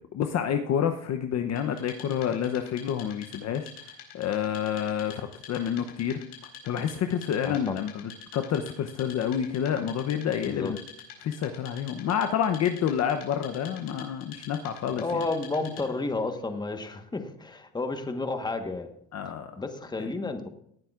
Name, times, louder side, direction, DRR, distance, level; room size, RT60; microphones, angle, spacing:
voice 1, 0.1-10.8 11.2-15.3 19.1-19.5 20.0-20.2, left 8 dB, 35° left, 7 dB, 0.8 m, -29 dB
Wood, 1.6-16.1, left 6 dB, 65° left, 4.5 m, -47 dB
voice 2, 7.4-7.7 10.5-10.7 14.9-18.9 19.6-20.5, left 3 dB, 10° left, 7 dB, 1.3 m, -31 dB
18.5 x 10.0 x 2.5 m, 0.71 s
supercardioid pair, 120°, 46 cm